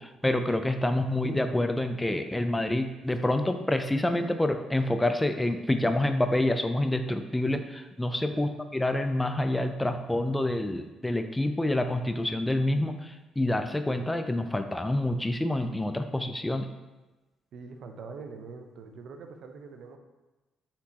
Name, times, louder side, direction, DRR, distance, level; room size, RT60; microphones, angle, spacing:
voice 1, 0.0-16.7, left 1 dB, 10° left, 8 dB, 0.3 m, -27 dB
voice 2, 17.5-20.0, right 4 dB, 70° right, 6 dB, 0.5 m, -44 dB
4.3 x 4.0 x 2.8 m, 1.1 s
cardioid pair, 80°, 0 cm